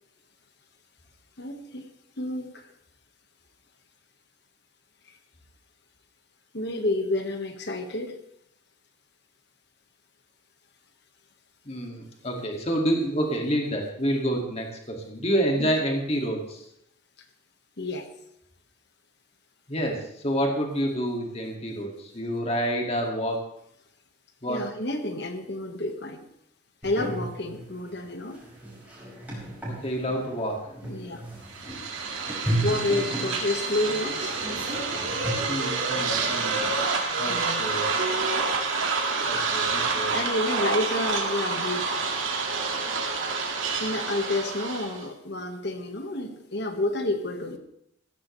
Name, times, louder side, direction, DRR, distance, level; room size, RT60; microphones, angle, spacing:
voice 1, 1.4-1.9 2.2-2.6 6.5-8.1 15.6-15.7 17.8-18.1 24.5-26.3 26.8-28.4 30.8-31.2 32.6-34.4 37.3-37.6 40.1-41.9 43.8-47.6, left 2 dB, 55° left, 6 dB, 1.5 m, -29 dB
voice 2, 11.7-16.6 19.7-23.4 24.4-24.6 29.8-30.6 33.1-33.3 35.5-36.6 37.2-37.9 39.2-40.2, equal, 30° left, 1 dB, 2.2 m, -28 dB
sound 1, 26.8-35.3, right 1 dB, 10° right, 5.1 m, -34 dB
sound 2, 31.5-45.1, right 4 dB, 85° right, 2.1 m, -28 dB
15.5 x 14.5 x 3.3 m, 0.75 s
head